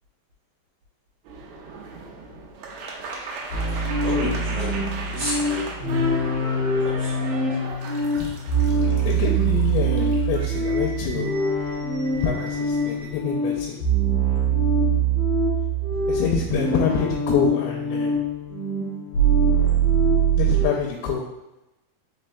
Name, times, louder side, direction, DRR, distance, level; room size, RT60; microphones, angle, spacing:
sound 1, 1.2-13.1, right 3 dB, 90° right, 1.9 m, -37 dB
sound 2, 3.5-20.7, right 3 dB, 65° left, 1.4 m, -23 dB
voice 1, 4.0-6.1 6.8-7.8, right 1 dB, 65° right, -8 dB, 1.7 m, -33 dB
voice 2, 9.0-11.3 12.2-13.8 16.1-18.2 20.4-21.3, left 6 dB, 80° left, -1 dB, 2.3 m, -26 dB
5.1 x 4.2 x 2.2 m, 0.95 s
omnidirectional pair, 4.5 m